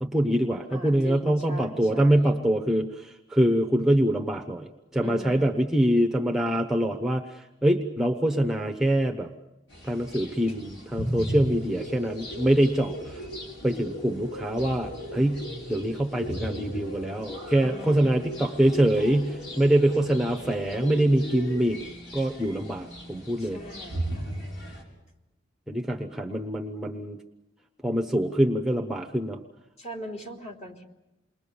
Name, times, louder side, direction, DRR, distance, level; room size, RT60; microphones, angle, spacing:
voice 1, 0.0-7.2 7.6-9.3 9.8-13.2 13.6-21.8 22.1-23.6 25.7-27.2 27.8-29.4, right 1 dB, 5° right, 2 dB, 1.0 m, -24 dB
voice 2, 0.7-2.4 5.0-5.7 17.6-18.4 23.4-24.3 29.8-30.8, left 1 dB, 35° left, 2 dB, 3.2 m, -41 dB
sound 1, 9.7-24.8, equal, 75° left, 6.0 m, -37 dB
28.5 x 21.5 x 7.1 m, 0.98 s
head